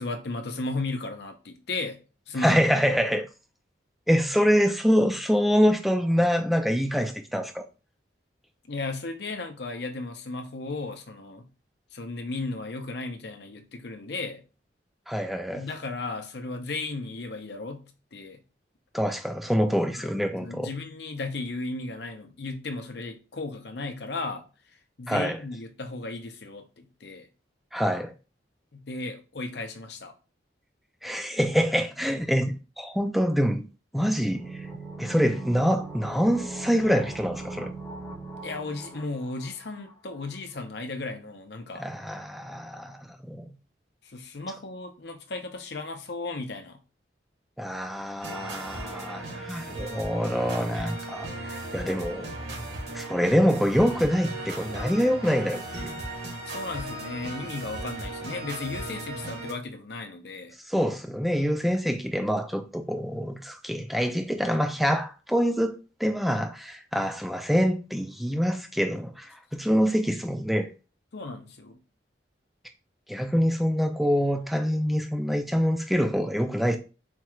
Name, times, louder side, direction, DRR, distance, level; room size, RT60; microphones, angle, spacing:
voice 1, 0.0-2.0 2.3-2.6 8.7-11.5 11.9-14.4 15.5-18.4 19.9-20.1 20.4-24.4 25.0-27.3 28.7-30.1 38.4-41.9 44.0-46.8 56.5-60.5 71.1-71.8, left 3 dB, 65° left, 0.7 m, -35 dB
voice 2, 2.4-3.3 4.1-7.6 15.1-15.6 18.9-20.7 25.1-25.4 27.7-28.1 31.0-33.6 33.9-34.7 35.0-37.7 41.8-43.6 47.6-52.3 52.9-56.0 60.7-70.7 73.1-76.8, equal, ahead, 0.4 m, -25 dB
sound 1, 34.2-39.9 40.2-40.3, right 3 dB, 20° left, 0.8 m, -39 dB
sound 2, 48.2-59.5, right 2 dB, 75° right, 1.7 m, -37 dB
4.4 x 2.4 x 3.0 m
head